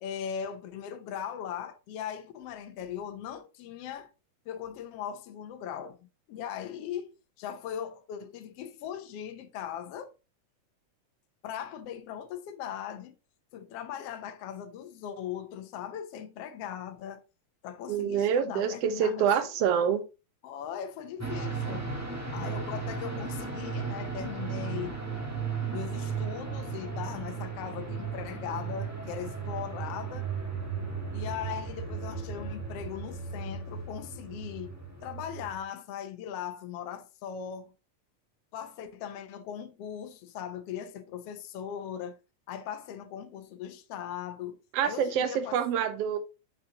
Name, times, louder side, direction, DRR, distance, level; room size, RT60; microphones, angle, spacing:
voice 1, 0.0-4.1 4.5-10.1 11.4-13.2 13.5-17.2 17.6-19.3 20.4-21.9 22.3-25.0 25.7-30.3 31.1-34.8 35.0-37.7 38.5-42.2 42.5-45.9, left 9 dB, 70° left, 1.5 m, -39 dB
voice 2, 17.9-20.0 44.7-46.2, right 8 dB, 65° right, 1.7 m, -26 dB
sound 1, 21.2-35.6, right 5 dB, 15° right, 0.5 m, -35 dB
8.3 x 6.6 x 2.9 m
omnidirectional pair, 3.6 m